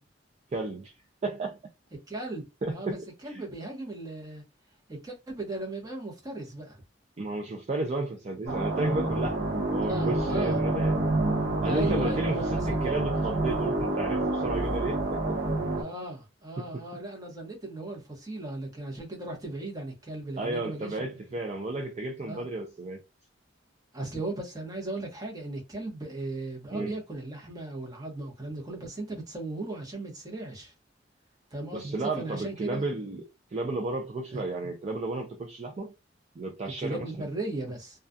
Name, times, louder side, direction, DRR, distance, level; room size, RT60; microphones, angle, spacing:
voice 1, 0.5-0.9 1.2-1.6 2.6-3.4 7.2-10.9 11.6-15.2 16.6-16.8 20.4-23.0 26.7-26.9 31.7-33.2 33.5-35.9 36.4-37.2, right 2 dB, 35° right, 0.4 m, -33 dB
voice 2, 2.1-2.4 2.7-3.0 3.2-4.4 4.9-6.8 9.8-10.6 11.6-12.8 15.8-21.2 22.3-22.4 23.9-30.7 31.5-32.9 34.3-34.4 36.8-38.0, right 2 dB, 20° right, 0.9 m, -37 dB
sound 1, 8.5-15.8, right 2 dB, 70° right, 0.9 m, -28 dB
2.3 x 2.3 x 2.5 m
head